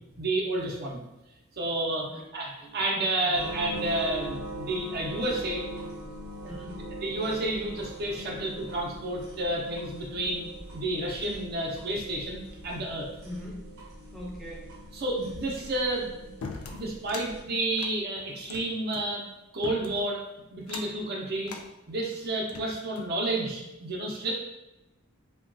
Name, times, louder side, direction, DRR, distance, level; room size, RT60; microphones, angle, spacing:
voice 1, 0.2-1.0 1.6-5.6 6.4-6.5 7.0-10.4 10.7-13.1 14.9-16.1 16.7-19.3 19.5-20.2 20.5-21.6 21.9-24.3, right 1 dB, 50° right, -1 dB, 0.5 m, -30 dB
voice 2, 3.2-3.6 6.5-6.7 13.2-13.7 14.1-14.7, left 1 dB, ahead, -5 dB, 0.5 m, -41 dB
sound 1, 3.3-17.4, right 1 dB, 85° right, 0.6 m, -41 dB
sound 2, 16.4-17.3 17.7-19.1 19.6-20.1 20.6-21.0 21.4-21.7 22.2-23.2, left 4 dB, 80° left, 0.4 m, -41 dB
2.9 x 2.2 x 2.5 m, 0.99 s
head